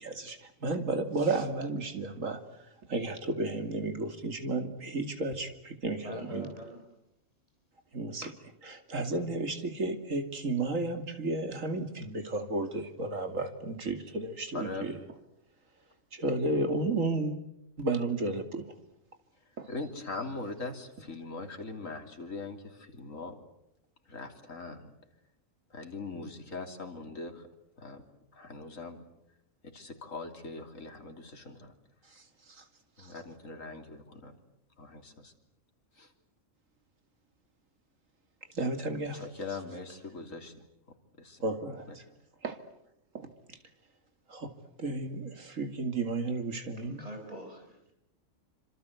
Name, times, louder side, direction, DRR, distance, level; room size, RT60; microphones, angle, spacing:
voice 1, 0.0-2.4 2.9-6.5 7.9-8.3 8.6-15.0 16.1-17.4 17.8-18.7 19.6-19.7 32.1-32.6 33.0-33.1 38.5-39.2 41.4-42.0 42.4-42.6 43.1-43.6 44.3-44.5 44.8-47.0, right 2 dB, 80° right, 7 dB, 2.9 m, -33 dB
voice 2, 6.0-6.8 46.7-47.8, right 1 dB, 30° right, 3 dB, 5.3 m, -44 dB
voice 3, 14.5-14.9 19.7-23.4 24.1-24.9 25.7-27.5 27.8-28.0 28.3-29.0 29.6-31.7 33.0-34.3 34.8-35.3 36.0-36.1 39.1-40.5 41.2-41.4 41.9-42.0, left 3 dB, 80° left, 4 dB, 3.6 m, -41 dB
27.0 x 26.5 x 8.2 m, 0.82 s
omnidirectional pair, 1.4 m